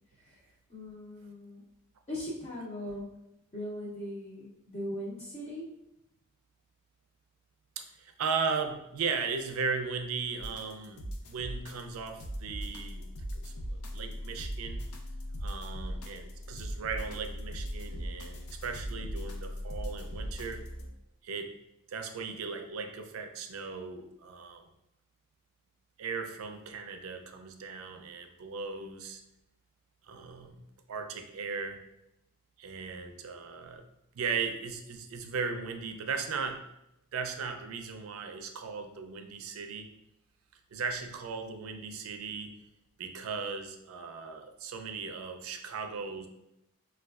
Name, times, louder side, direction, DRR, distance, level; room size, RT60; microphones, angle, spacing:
voice 1, 0.2-1.6 2.1-3.1 3.5-5.7, left 1 dB, 30° left, -5 dB, 0.5 m, -39 dB
voice 2, 7.8-13.1 13.3-13.5 13.9-14.8 15.4-20.6 21.2-21.5 21.9-24.7 26.0-29.2 30.0-31.8 32.6-33.8 34.1-36.7 37.1-39.9 40.7-42.5 43.0-46.3, right 5 dB, 80° right, 6 dB, 0.4 m, -37 dB
sound 1, 10.4-20.9, equal, 85° left, 0.5 m, -39 dB
4.1 x 2.3 x 2.3 m, 0.84 s
head